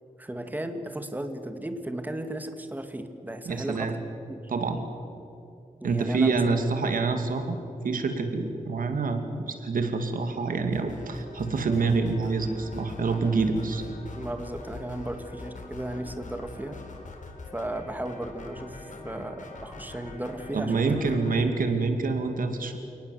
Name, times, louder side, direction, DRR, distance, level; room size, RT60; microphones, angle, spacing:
voice 1, 0.2-3.9 4.3-4.5 5.8-6.6 14.2-16.8 17.5-21.0, right 1 dB, 10° right, 7 dB, 2.0 m, -35 dB
voice 2, 3.5-4.0 4.5-4.8 5.8-7.6 7.8-13.8 20.5-22.8, right 4 dB, 90° right, 6 dB, 2.5 m, -26 dB
sound 1, 10.7-21.4, left 3 dB, 65° left, 4.2 m, -43 dB
29.5 x 19.0 x 8.1 m, 2.8 s
wide cardioid pair, 100°, 14 cm